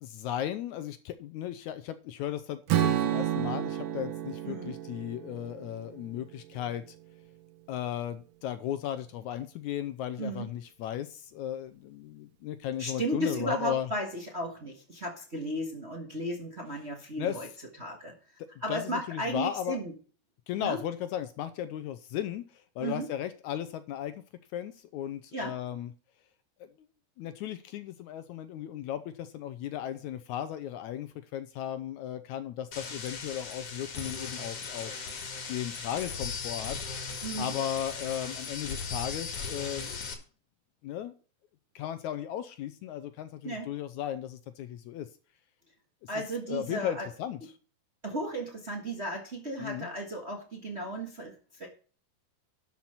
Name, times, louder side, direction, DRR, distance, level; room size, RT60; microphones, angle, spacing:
voice 1, 0.0-6.8 7.7-13.9 17.2-17.4 18.7-19.8 20.5-24.2 24.5-25.9 27.2-34.9 35.5-36.8 37.4-40.0 40.8-41.1 41.8-45.1 46.5-47.4 49.6-49.9, left 11 dB, 75° left, 12 dB, 1.9 m, -36 dB
Strum, 2.7-6.9, right 11 dB, 85° right, 1.2 m, -31 dB
voice 2, 12.8-17.5 17.8-18.1 18.6-19.9 20.6-20.8 22.8-23.1 25.3-25.5 37.2-37.5 43.4-43.7 46.1-47.1 48.0-51.7, right 1 dB, 30° right, 1 dB, 1.2 m, -34 dB
sound 1, 32.7-40.1, left 5 dB, 50° left, 2.6 m, -38 dB
12.0 x 5.9 x 5.6 m, 0.39 s
omnidirectional pair, 3.7 m